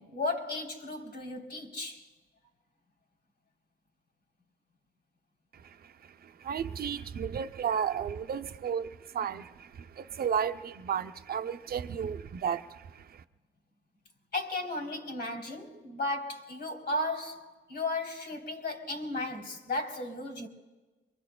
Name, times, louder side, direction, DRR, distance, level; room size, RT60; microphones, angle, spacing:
voice 1, 0.0-2.1 14.3-20.5, left 2 dB, 60° left, 3.3 m, -35 dB
voice 2, 5.5-13.2, right 7 dB, 50° right, 0.7 m, -34 dB
25.0 x 23.0 x 2.3 m
cardioid pair, 90°, 20 cm